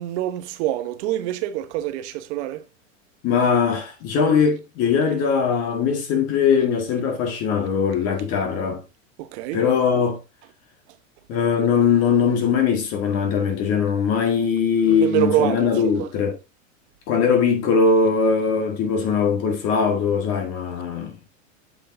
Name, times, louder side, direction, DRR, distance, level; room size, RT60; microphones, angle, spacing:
voice 1, 0.0-2.6 9.2-9.6 14.8-16.1, right 14 dB, 60° right, 1.1 m, -26 dB
voice 2, 3.2-8.8 9.5-10.2 11.3-16.3 17.1-21.2, left 6 dB, 40° left, 1.7 m, -20 dB
8.1 x 6.2 x 2.6 m
supercardioid pair, 135°, 39 cm